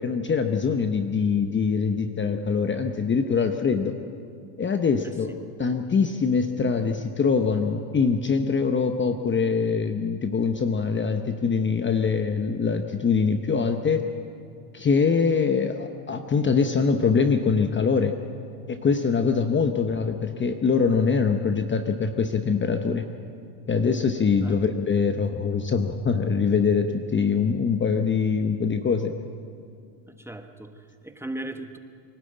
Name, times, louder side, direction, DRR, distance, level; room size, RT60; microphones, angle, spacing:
voice 1, 0.0-4.0 4.6-14.1 14.7-18.1 18.7-23.1 23.7-29.1, left 5 dB, 25° left, 7 dB, 0.9 m, -23 dB
voice 2, 30.1-31.8, right 1 dB, 5° right, 6 dB, 1.2 m, -37 dB
24.0 x 12.5 x 8.8 m, 2.4 s
supercardioid pair, 100°, 49 cm